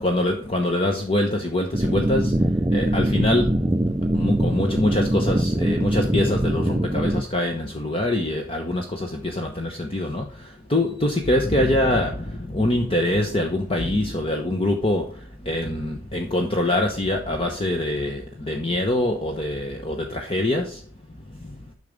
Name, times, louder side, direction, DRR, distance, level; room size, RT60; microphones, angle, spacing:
voice 1, 0.0-2.3 2.7-3.5 4.1-10.2 10.7-15.0 15.5-20.8, left 1 dB, 25° left, 3 dB, 1.0 m, -24 dB
sound 1, 1.7-7.2, right 1 dB, 10° right, 0.4 m, -22 dB
10.5 x 6.6 x 5.2 m, 0.41 s
head